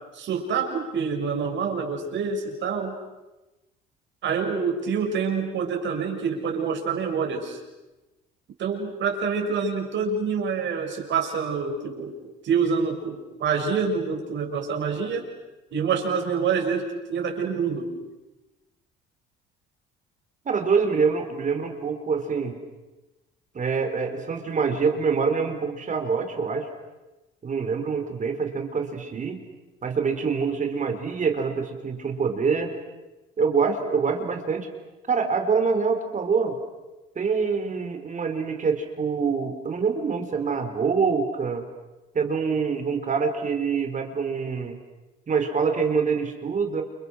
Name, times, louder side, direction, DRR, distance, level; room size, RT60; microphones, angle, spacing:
voice 1, 0.1-3.0 4.2-7.6 8.6-12.2 12.4-15.3 15.7-17.9, right 5 dB, 60° right, 1 dB, 7.2 m, -26 dB
voice 2, 20.5-22.6 23.5-26.7 27.4-29.4 29.8-32.7 33.4-34.7 35.1-36.5 37.2-41.6 42.1-44.8 45.3-46.8, right 5 dB, 35° right, 6 dB, 4.2 m, -25 dB
30.0 x 29.0 x 6.5 m, 1.1 s
supercardioid pair, 90°, 21 cm